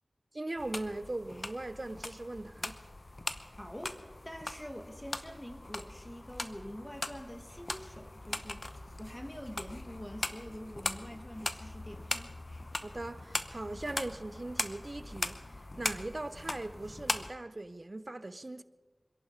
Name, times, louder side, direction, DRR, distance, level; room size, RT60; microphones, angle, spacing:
voice 1, 0.3-2.7 12.8-15.4 15.8-18.6, right 2 dB, 45° right, 0.7 m, -40 dB
sound 1, 0.6-17.3, left 2 dB, 45° left, 0.9 m, -40 dB
voice 2, 3.6-4.0 4.2-8.7 9.0-12.4, equal, 15° left, 2.1 m, -45 dB
26.5 x 11.0 x 4.9 m
wide cardioid pair, 55°, 0 cm